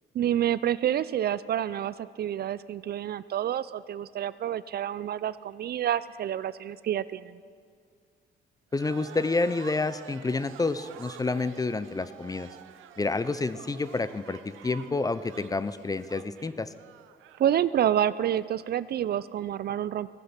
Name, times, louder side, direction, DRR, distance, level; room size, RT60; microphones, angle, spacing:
voice 1, 0.1-7.4 17.4-20.1, right 10 dB, 55° right, 17 dB, 0.4 m, -28 dB
voice 2, 8.7-12.5 13.0-16.7, left 3 dB, 20° left, 14 dB, 0.5 m, -29 dB
sound 1, 8.7-17.5, right 10 dB, 85° right, 0.7 m, -48 dB
15.5 x 9.6 x 6.0 m, 2.1 s
cardioid pair, 90°, 20 cm